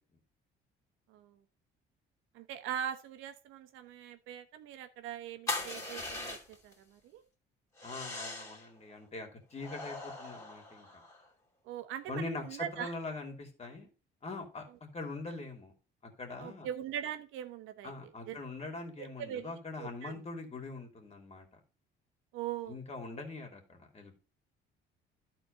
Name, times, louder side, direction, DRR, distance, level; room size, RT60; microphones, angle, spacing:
voice 1, 1.1-1.4 2.3-7.2 11.6-12.9 16.4-17.9 18.3-18.4 19.0-19.5 19.8-20.2 22.3-22.8, right 10 dB, 85° right, 8 dB, 1.1 m, -41 dB
sound 1, 5.5-6.7 7.8-8.7 9.6-11.3, left 2 dB, 15° left, 2.9 m, -40 dB
voice 2, 7.8-11.0 12.1-13.9 14.2-15.7 16.0-16.7 17.8-21.5 22.7-24.2, left 3 dB, 35° left, 4 dB, 2.8 m, -43 dB
11.5 x 4.4 x 5.3 m, 0.32 s
cardioid pair, 100°, 20 cm